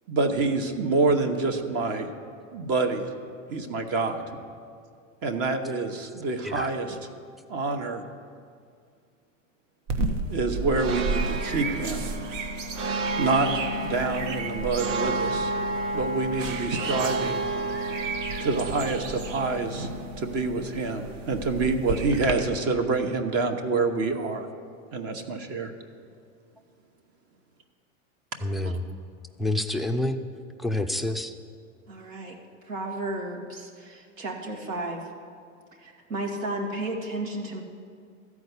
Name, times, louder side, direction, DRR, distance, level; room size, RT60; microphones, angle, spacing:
voice 1, 0.1-2.1 2.5-3.1 3.5-4.2 5.2-7.0 7.5-8.0 10.3-12.1 13.2-15.5 15.9-17.4 18.4-19.9 20.2-24.5 24.9-25.7 28.6-28.8, right 3 dB, 40° right, 5 dB, 1.1 m, -27 dB
sound 1, 9.9-22.3, right 2 dB, 70° right, 1.1 m, -30 dB
voice 2, 28.4-28.8 29.4-30.2 30.6-31.3, left 1 dB, ahead, 8 dB, 0.3 m, -27 dB
voice 3, 31.9-32.4 32.6-35.1 35.8-37.6, right 1 dB, 85° right, 0 dB, 1.9 m, -33 dB
13.5 x 4.8 x 8.2 m, 2.2 s
hypercardioid pair, 95°, 38 cm